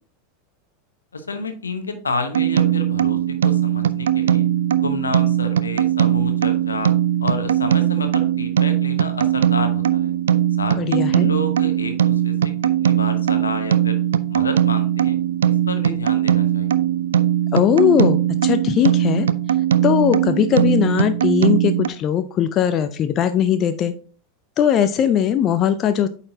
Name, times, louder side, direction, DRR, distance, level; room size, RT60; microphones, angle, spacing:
voice 1, 1.1-4.5 4.8-6.9 7.2-10.1 10.6-12.3 12.7-14.0 14.3-15.2 15.5-16.8, left 3 dB, 80° left, 7 dB, 0.9 m, -30 dB
sound 1, 2.3-21.9, right 11 dB, 70° right, 0.3 m, -19 dB
voice 2, 10.8-11.3 17.5-19.3 19.8-23.9 24.6-26.1, left 9 dB, 35° left, 10 dB, 0.4 m, -19 dB
8.6 x 4.2 x 2.7 m, 0.41 s
figure-of-eight pair, 85°, 0 cm